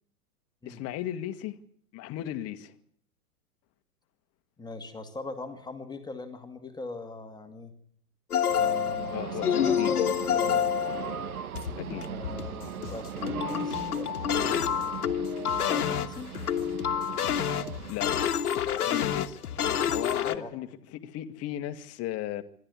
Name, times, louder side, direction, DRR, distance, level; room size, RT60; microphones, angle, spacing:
voice 1, 0.6-1.6 1.9-2.7 9.1-9.9 11.8-12.0 15.6-15.8 17.9-18.1 18.7-19.4 19.9-22.4, left 13 dB, 30° left, 1.6 m, -35 dB
voice 2, 4.6-7.8 8.5-10.0 10.3-10.8 11.9-14.7 15.7-16.3 20.1-20.5, left 3 dB, 10° left, 2.2 m, -41 dB
Spielautomaten Sound, 8.3-20.4, left 8 dB, 70° left, 1.6 m, -28 dB
sound 1, 8.5-17.9, right 10 dB, 65° right, 1.3 m, -39 dB
25.5 x 12.5 x 9.5 m
figure-of-eight pair, 105°, 46 cm